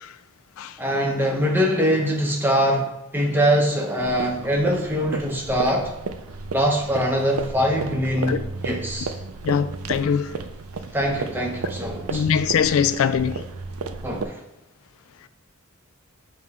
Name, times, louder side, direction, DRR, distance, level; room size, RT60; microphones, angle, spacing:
voice 1, 0.8-2.9 3.1-5.9 6.5-9.1 10.9-12.3 14.0-14.4, equal, 10° right, 0.9 m, -23 dB
sound 1, 4.0-14.3, right 4 dB, 75° right, 0.5 m, -33 dB
voice 2, 9.4-10.3 12.1-13.4, left 7 dB, 65° left, 0.3 m, -22 dB
7.3 x 3.1 x 5.5 m
head